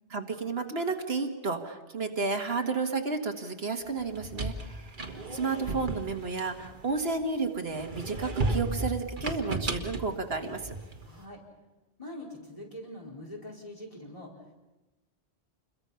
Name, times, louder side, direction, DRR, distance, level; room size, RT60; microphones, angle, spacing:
voice 1, 0.1-10.7, right 4 dB, 65° right, 5 dB, 1.8 m, -32 dB
sound 1, 4.0-7.2 7.7-11.1, right 2 dB, 45° right, 1.7 m, -34 dB
voice 2, 11.0-11.4 12.0-14.5, left 1 dB, 30° left, -2 dB, 4.8 m, -43 dB
28.5 x 22.0 x 5.7 m, 1.1 s
omnidirectional pair, 1.1 m